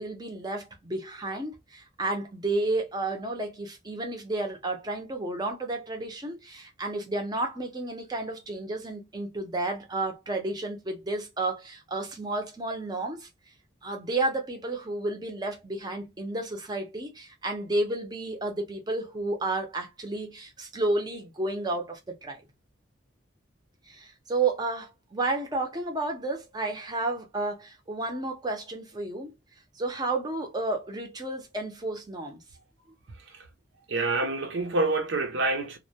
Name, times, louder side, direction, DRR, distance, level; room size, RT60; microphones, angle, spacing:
voice 1, 0.0-13.3 13.8-22.4 23.9-29.3 29.7-32.4, right 2 dB, 20° right, 0.5 m, -31 dB
voice 2, 33.1-33.5 33.9-35.8, right 2 dB, 75° right, 0.6 m, -27 dB
2.1 x 2.1 x 2.7 m
head